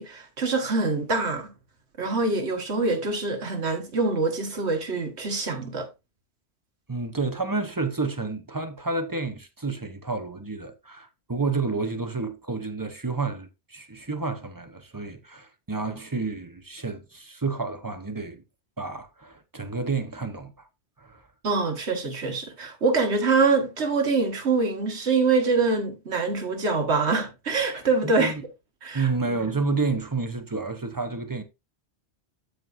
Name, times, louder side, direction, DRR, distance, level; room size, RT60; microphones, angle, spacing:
voice 1, 0.0-1.5 2.0-5.9 21.4-28.3 28.8-29.5, right 4 dB, 75° right, 1.8 m, -25 dB
voice 2, 6.9-18.4 18.8-20.5 21.0-21.2 28.0-28.4 28.9-31.4, right 3 dB, 20° right, 0.8 m, -30 dB
13.0 x 4.8 x 2.6 m
omnidirectional pair, 1.1 m